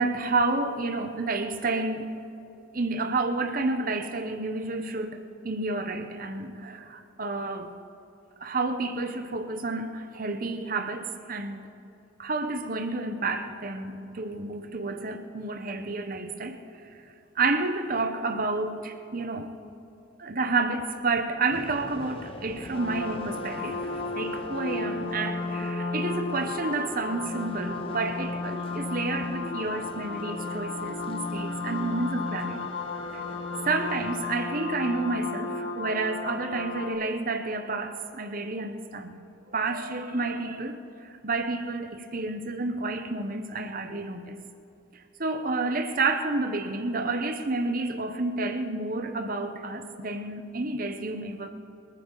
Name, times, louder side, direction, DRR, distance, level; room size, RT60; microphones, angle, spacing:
voice 1, 0.0-2.2 2.7-7.7 8.4-11.7 12.2-16.9 17.3-19.5 20.2-32.7 33.6-39.2 39.5-44.4 44.9-51.5, right 3 dB, 40° right, 7 dB, 1.0 m, -30 dB
sound 1, 21.5-34.2, left 1 dB, 25° left, 0.6 m, -42 dB
sound 2, 22.7-36.9, left 3 dB, 75° left, 2.3 m, -34 dB
25.5 x 9.4 x 4.0 m, 2.8 s
head